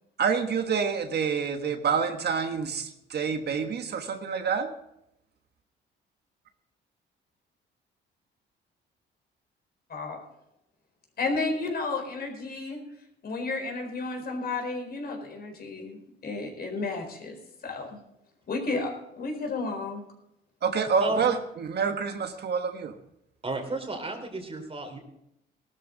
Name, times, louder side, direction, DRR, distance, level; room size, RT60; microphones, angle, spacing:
voice 1, 0.2-4.7 20.6-22.9, right 6 dB, 55° right, 6 dB, 1.4 m, -27 dB
voice 2, 11.2-12.8 13.2-17.3 17.6-18.0 18.5-20.0, left 3 dB, 50° left, 3 dB, 4.5 m, -32 dB
voice 3, 23.4-25.0, right 2 dB, 30° right, 5 dB, 3.2 m, -33 dB
17.5 x 12.5 x 4.0 m, 0.81 s
cardioid pair, 90°, 20 cm